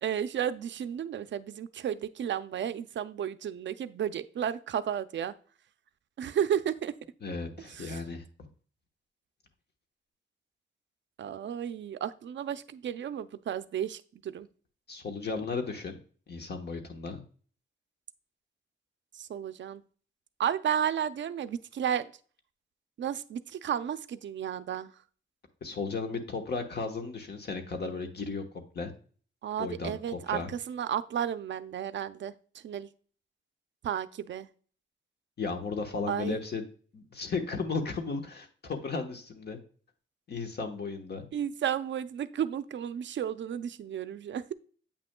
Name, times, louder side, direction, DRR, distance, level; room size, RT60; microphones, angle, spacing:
voice 1, 0.0-5.3 6.2-6.9 7.7-8.0 11.2-14.5 19.1-19.8 20.4-22.1 23.0-24.9 29.4-32.9 33.8-34.5 36.1-36.4 41.3-44.5, right 9 dB, 65° right, 13 dB, 0.4 m, -33 dB
voice 2, 7.2-8.5 14.9-16.0 16.3-17.2 25.6-28.9 29.6-30.5 35.4-36.6 36.9-39.6 40.3-41.3, left 4 dB, 50° left, 5 dB, 1.1 m, -35 dB
8.4 x 6.0 x 2.2 m, 0.43 s
wide cardioid pair, 160°, 21 cm